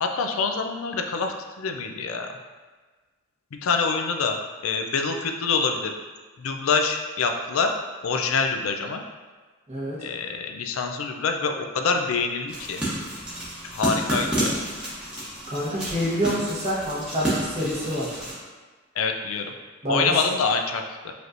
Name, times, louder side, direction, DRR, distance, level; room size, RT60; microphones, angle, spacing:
voice 1, 0.0-2.3 3.5-4.4 4.6-5.9 6.4-7.7 8.0-9.0 10.0-12.8 13.7-14.6 19.0-19.5 19.9-21.1, left 5 dB, 75° left, 4 dB, 0.4 m, -26 dB
sound 1, 12.5-18.3, right 1 dB, 5° right, 1.0 m, -30 dB
voice 2, 15.5-18.1 19.8-20.2, equal, 30° right, -6 dB, 1.0 m, -27 dB
5.0 x 3.0 x 2.5 m, 1.4 s
head